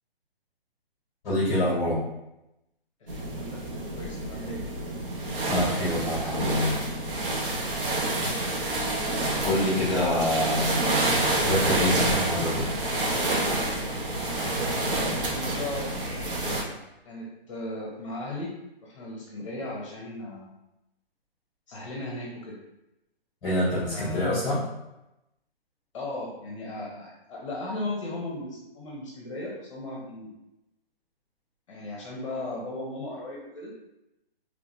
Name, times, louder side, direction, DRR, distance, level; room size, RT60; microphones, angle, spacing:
voice 1, 1.2-2.0 5.5-6.8 9.4-11.0 11.3-12.7 23.4-24.6, left 1 dB, 10° left, -10 dB, 1.2 m, -26 dB
voice 2, 3.0-4.6 14.5-16.2 17.0-18.5 18.8-20.5 21.7-22.6 23.9-24.3 25.9-30.3 31.7-33.7, left 1 dB, 30° left, -3 dB, 0.9 m, -37 dB
sound 1, 3.1-16.6, right 2 dB, 60° right, 1.0 m, -28 dB
4.7 x 3.3 x 2.7 m, 0.91 s
hypercardioid pair, 165°, 31 cm